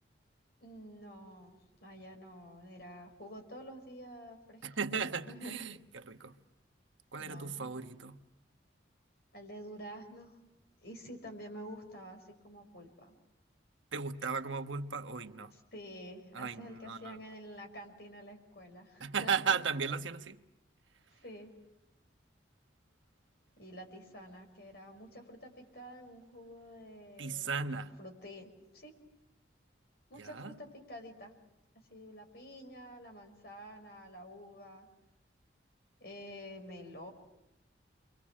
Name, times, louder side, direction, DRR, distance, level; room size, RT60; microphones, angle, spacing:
voice 1, 0.6-5.6 7.2-7.7 9.3-10.4 10.8-13.1 15.7-19.3 21.1-21.5 23.6-28.9 30.1-31.3 31.9-34.9 36.0-37.1, equal, 55° left, 5.6 m, -49 dB
voice 2, 4.6-6.4 7.1-8.2 13.9-15.5 16.3-17.2 19.0-20.4 27.2-27.9 30.2-30.6, right 5 dB, 85° right, 1.2 m, -36 dB
29.5 x 24.5 x 7.5 m
head